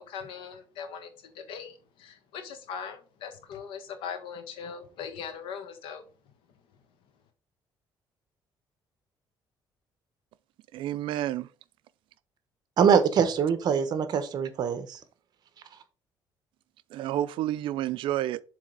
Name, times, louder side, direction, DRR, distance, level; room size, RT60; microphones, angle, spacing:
voice 1, 0.1-1.1 1.3-6.0, left 7 dB, 90° left, 1.4 m, -40 dB
voice 2, 10.7-11.5 16.9-18.4, right 13 dB, 80° right, 0.4 m, -30 dB
voice 3, 12.8-15.0, right 7 dB, 55° right, 1.0 m, -23 dB
7.4 x 3.4 x 5.2 m
cardioid pair, 145°, 8 cm